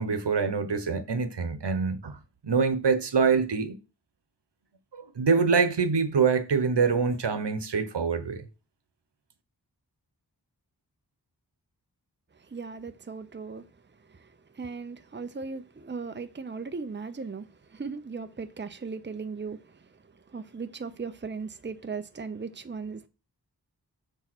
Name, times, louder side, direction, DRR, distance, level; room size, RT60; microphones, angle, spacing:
voice 1, 0.0-2.2 2.4-3.8 4.9-8.4, right 5 dB, 85° right, 1.1 m, -25 dB
voice 2, 12.3-13.7 14.0-23.1, right 4 dB, 25° right, 0.7 m, -38 dB
6.7 x 4.7 x 6.1 m
wide cardioid pair, 65°, 40 cm